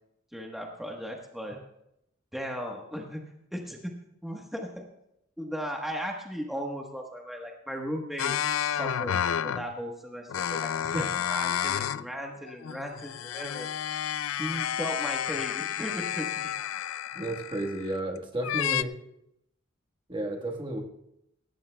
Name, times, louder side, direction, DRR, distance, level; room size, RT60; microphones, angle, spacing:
voice 1, 0.3-1.6 2.3-3.2 3.5-3.9 4.2-4.9 5.4-13.7 14.4-16.5, equal, ahead, 0 dB, 1.3 m, -37 dB
sound 1, 8.2-9.7 10.3-12.1 12.4-18.0 18.4-18.8, left 9 dB, 90° left, 0.4 m, -31 dB
voice 2, 17.1-18.9 20.1-20.8, right 1 dB, 25° right, 2 dB, 1.4 m, -32 dB
18.0 x 17.5 x 2.3 m, 0.81 s
head